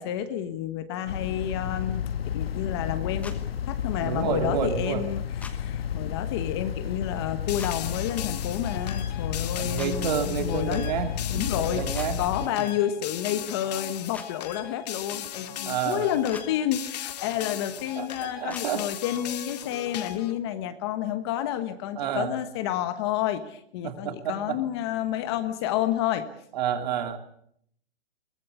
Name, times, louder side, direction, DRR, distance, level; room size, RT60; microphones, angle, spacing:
voice 1, 0.0-2.0 2.3-10.9 11.3-26.3, left 11 dB, 25° left, 10 dB, 1.2 m, -30 dB
sound 1, 1.1-12.5, left 9 dB, 65° left, 1.4 m, -32 dB
sound 2, 3.2-3.4 5.4-5.6 7.6-7.7 9.8-9.9 11.9-12.1 14.1-14.3 16.3-16.5 18.5-18.7, left 4 dB, 5° left, 1.1 m, -41 dB
voice 2, 4.0-5.1 8.8-8.9 9.6-12.2 12.6-12.7 15.7-16.1 18.0-18.8 21.9-22.3 23.8-24.6 26.5-27.2, right 8 dB, 40° right, 7 dB, 2.7 m, -30 dB
sound 3, 7.5-20.4, left 11 dB, 40° left, 1.9 m, -38 dB
23.0 x 18.5 x 8.5 m, 0.69 s
hypercardioid pair, 165°, 32 cm